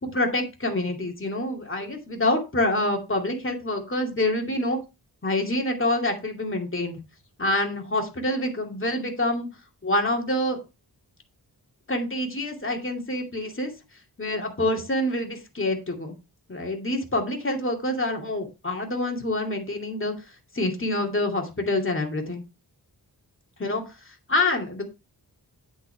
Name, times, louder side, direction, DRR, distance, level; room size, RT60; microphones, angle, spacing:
voice 1, 0.0-4.8 5.2-7.0 7.4-9.5 9.8-10.6 11.9-13.7 14.2-16.1 16.5-20.1 20.5-22.4 23.6-23.8 24.3-24.8, left 1 dB, 30° left, 2 dB, 2.4 m, -26 dB
9.1 x 8.0 x 3.3 m, 0.27 s
wide cardioid pair, 110°, 41 cm